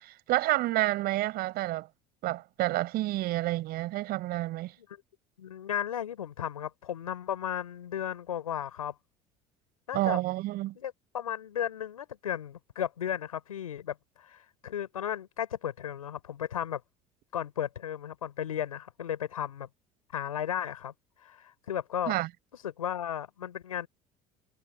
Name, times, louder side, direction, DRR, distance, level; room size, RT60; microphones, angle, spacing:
voice 1, 0.0-1.9 2.2-4.7 9.9-10.8 22.1-22.3, right 17 dB, 60° right, 4.8 m, -29 dB
voice 2, 5.4-8.9 9.9-10.2 10.7-16.8 17.3-19.7 20.1-20.9 21.2-22.1 22.6-23.9, left 10 dB, 90° left, 6.0 m, -35 dB
hypercardioid pair, 70°, 18 cm